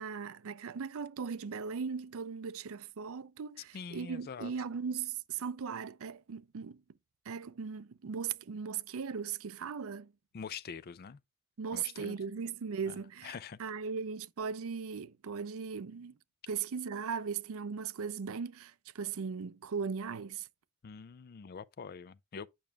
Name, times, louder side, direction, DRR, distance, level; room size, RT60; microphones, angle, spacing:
voice 1, 0.0-6.8 7.3-10.1 11.6-16.1 16.5-20.5, right 6 dB, 70° right, 0.5 m, -38 dB
voice 2, 3.7-4.5 10.3-11.2 11.7-12.2 12.9-13.6 20.8-22.5, left 6 dB, 45° left, 0.4 m, -45 dB
8.7 x 6.1 x 2.3 m
head